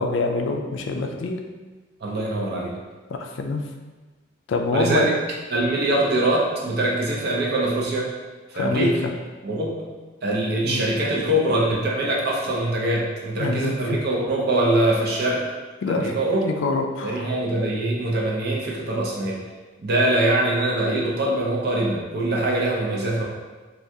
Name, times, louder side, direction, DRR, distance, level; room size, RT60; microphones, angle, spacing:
voice 1, 0.0-1.4 3.1-3.6 4.5-5.1 8.5-8.9 10.6-10.8 13.4-14.0 15.8-16.2 16.4-17.3, left 3 dB, 65° left, 4 dB, 0.3 m, -25 dB
voice 2, 2.0-2.7 4.7-5.1 5.5-8.1 8.5-8.9 9.4-9.8 10.2-15.4 15.9-16.4 17.0-19.4 19.8-23.2, right 1 dB, 50° right, -3 dB, 0.6 m, -23 dB
3.3 x 2.4 x 2.7 m, 1.3 s
head